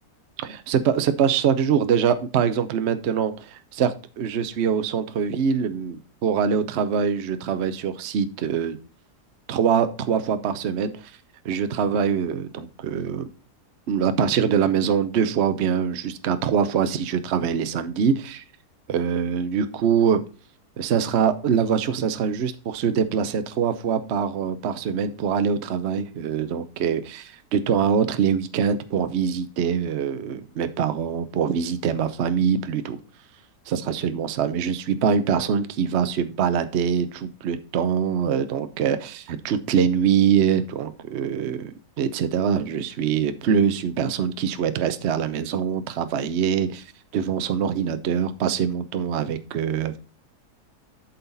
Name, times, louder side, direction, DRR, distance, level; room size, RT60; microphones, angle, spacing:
voice 1, 0.4-8.8 9.5-11.1 11.4-13.3 13.9-18.4 18.9-20.2 20.8-33.0 33.7-46.8 47.1-50.0, right 7 dB, 55° right, 11 dB, 0.8 m, -24 dB
11.5 x 4.3 x 4.0 m, 0.35 s
omnidirectional pair, 1.7 m